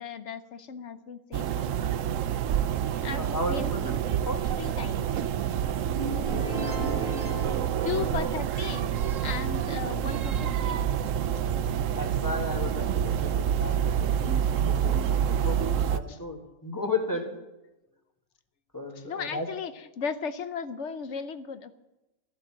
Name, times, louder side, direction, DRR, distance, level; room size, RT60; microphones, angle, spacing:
voice 1, 0.0-1.9 3.0-3.7 4.6-5.1 7.8-8.9 9.2-10.8 16.1-16.2 18.9-21.7, left 6 dB, 60° left, 11 dB, 1.1 m, -36 dB
sound 1, 1.3-16.0, right 9 dB, 70° right, 1.0 m, -28 dB
voice 2, 3.2-3.9 4.3-4.4 6.4-7.5 8.0-8.3 12.0-13.8 14.2-17.4 18.7-19.5, left 2 dB, 15° left, 3 dB, 1.9 m, -35 dB
sound 2, 5.9-8.8, right 2 dB, 45° right, 1.6 m, -35 dB
14.5 x 11.0 x 7.5 m, 1.0 s
omnidirectional pair, 1.4 m